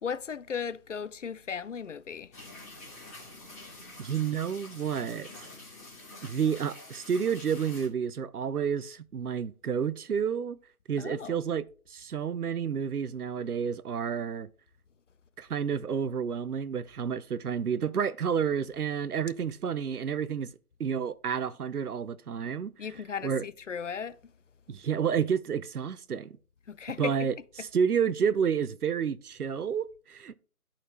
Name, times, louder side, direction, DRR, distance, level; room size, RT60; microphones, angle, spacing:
voice 1, 0.0-2.3 11.0-11.4 22.8-24.2 26.7-27.3 27.6-27.7, left 6 dB, 60° left, 0.5 m, -36 dB
sound 1, 2.3-7.9, left 2 dB, 10° left, 1.3 m, -47 dB
voice 2, 4.0-5.5 6.2-10.6 10.9-14.5 15.4-20.5 20.8-22.7 23.2-23.4 24.7-26.4 27.0-30.4, right 7 dB, 85° right, 0.7 m, -30 dB
12.0 x 4.3 x 3.1 m
figure-of-eight pair, 160°, 44 cm